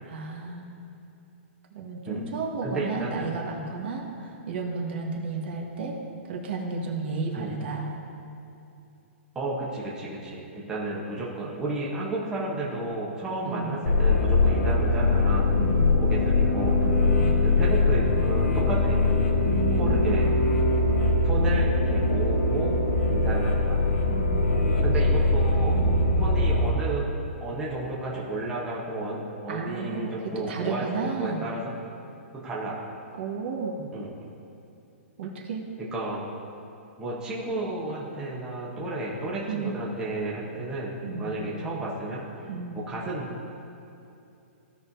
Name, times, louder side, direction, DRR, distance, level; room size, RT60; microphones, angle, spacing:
voice 1, 0.0-0.8 1.7-6.0 6.2-7.9 13.5-13.7 15.6-15.9 16.8-17.3 19.4-20.3 24.1-24.7 25.7-26.0 29.5-31.4 33.2-33.8 35.2-35.6 39.5-39.8 41.0-41.3 42.5-42.8, right 4 dB, 55° right, 0 dB, 1.5 m, -33 dB
voice 2, 2.6-3.3 7.4-7.5 9.3-15.5 15.9-16.8 17.4-19.0 19.7-20.3 21.2-22.8 23.1-23.8 24.8-25.8 26.2-27.1 27.4-31.7 32.3-32.7 33.9-34.1 35.9-36.2 37.0-42.5 42.7-43.3, right 2 dB, 10° right, -6 dB, 1.1 m, -32 dB
sound 1, 13.8-26.7, left 2 dB, 70° left, 1.2 m, -22 dB
16.0 x 5.6 x 2.7 m, 2.8 s
hypercardioid pair, 165°, 7 cm